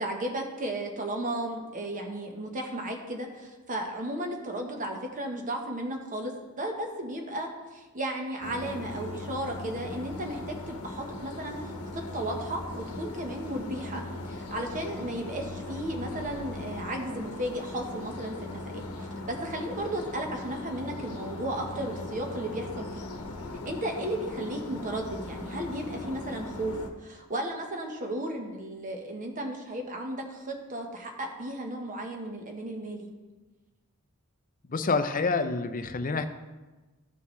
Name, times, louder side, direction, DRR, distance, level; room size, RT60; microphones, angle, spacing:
voice 1, 0.0-23.1 23.6-33.1, right 1 dB, 35° right, 2 dB, 1.2 m, -34 dB
sound 1, 8.4-26.9, left 2 dB, 75° left, 1.1 m, -39 dB
voice 2, 34.7-36.3, left 4 dB, 40° left, 8 dB, 0.6 m, -27 dB
15.0 x 5.8 x 3.2 m, 1.2 s
head